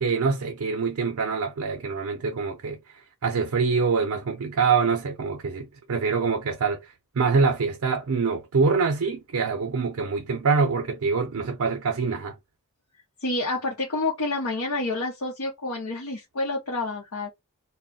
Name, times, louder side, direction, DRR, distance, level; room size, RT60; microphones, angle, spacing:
voice 1, 0.0-2.8 3.2-12.4, right 5 dB, 75° right, 0.5 m, -25 dB
voice 2, 13.2-17.3, left 2 dB, 70° left, 0.8 m, -28 dB
2.3 x 2.1 x 3.6 m
head